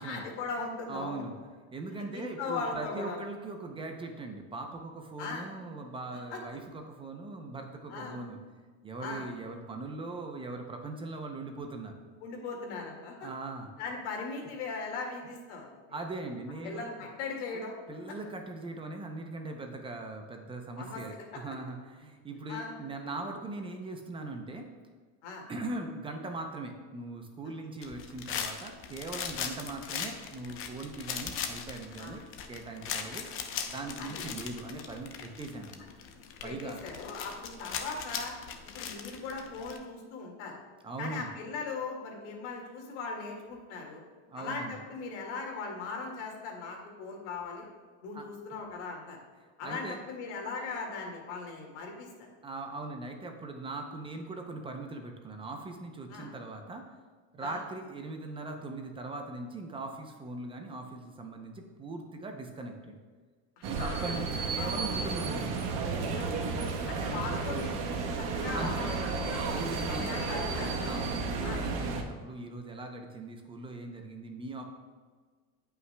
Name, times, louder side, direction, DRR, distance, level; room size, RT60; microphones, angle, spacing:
voice 1, 0.0-1.2 2.0-3.2 5.2-5.5 6.1-6.4 7.9-8.2 9.0-9.3 12.2-13.3 13.8-16.0 16.6-17.8 20.8-21.0 21.3-21.4 22.5-22.8 25.2-25.5 29.4-29.5 32.0-32.2 34.0-34.2 36.4-38.4 38.7-40.6 41.0-44.0 44.3-47.7 48.0-49.2 49.6-52.3 56.1-56.3 57.4-57.6 63.6-64.9 66.2-66.3 66.9-70.7 71.4-71.6, left 4 dB, 90° left, 1 dB, 2.0 m, -39 dB
voice 2, 0.9-1.3 1.7-8.4 8.8-12.0 13.2-13.7 15.9-17.1 17.5-17.6 17.9-24.7 25.5-32.2 32.5-33.3 33.7-35.9 36.4-36.8 40.8-41.3 44.3-44.8 48.1-48.3 49.6-50.0 52.4-56.9 57.3-63.0 63.7-65.8 68.5-68.9 69.4-74.6, right 2 dB, 15° right, 3 dB, 0.5 m, -40 dB
sound 1, 27.8-39.8, left 7 dB, 40° left, 0.7 m, -39 dB
sound 2, 63.6-72.0, right 4 dB, 50° right, 1.1 m, -32 dB
17.0 x 5.7 x 2.2 m, 1.5 s
cardioid pair, 155°, 34 cm